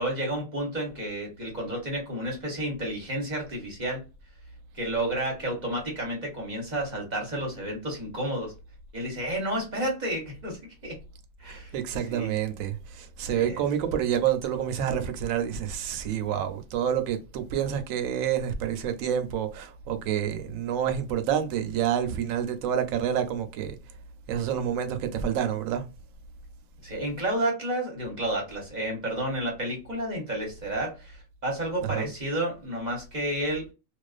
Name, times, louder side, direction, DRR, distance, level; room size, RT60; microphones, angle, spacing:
voice 1, 0.0-4.0 4.7-8.5 8.9-11.0 11.4-11.7 12.0-12.3 13.3-13.6 26.8-33.7, right 1 dB, 35° right, 0.9 m, -31 dB
voice 2, 11.5-23.8 24.3-25.8 31.8-32.1, right 9 dB, 75° right, 0.9 m, -28 dB
2.4 x 2.4 x 2.3 m
omnidirectional pair, 1.5 m